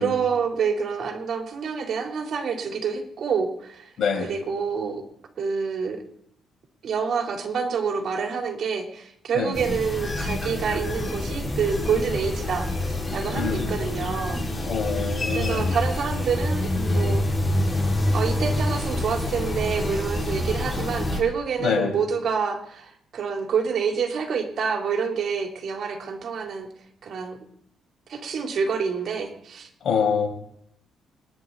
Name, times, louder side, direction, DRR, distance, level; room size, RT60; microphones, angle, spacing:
voice 1, 0.0-3.9 4.2-5.0 5.4-6.0 6.8-14.4 15.3-17.4 18.1-26.7 27.0-27.4 28.1-29.7, right 6 dB, 60° right, 1 dB, 3.7 m, -27 dB
voice 2, 4.0-4.3 9.3-9.5 13.3-13.7 14.7-15.7 21.6-21.9 29.8-30.3, left 6 dB, 60° left, -1 dB, 5.8 m, -25 dB
sound 1, 9.5-21.2, left 1 dB, 25° left, 5.1 m, -26 dB
25.5 x 10.5 x 4.1 m, 0.71 s
cardioid pair, 90°, 0 cm